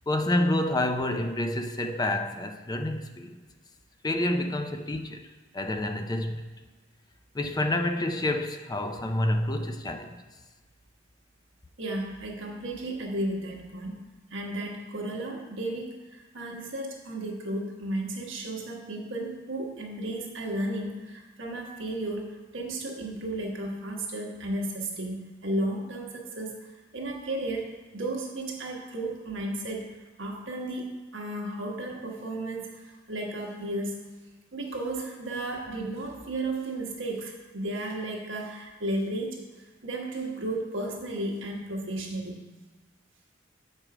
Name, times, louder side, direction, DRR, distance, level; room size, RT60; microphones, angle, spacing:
voice 1, 0.1-3.4 4.0-5.3 5.5-6.4 7.3-10.2, left 1 dB, 20° left, 0.4 m, -28 dB
voice 2, 11.8-29.8 30.2-34.1 34.5-39.4 39.8-42.4, right 1 dB, 85° right, 1.2 m, -34 dB
7.5 x 4.7 x 4.8 m
head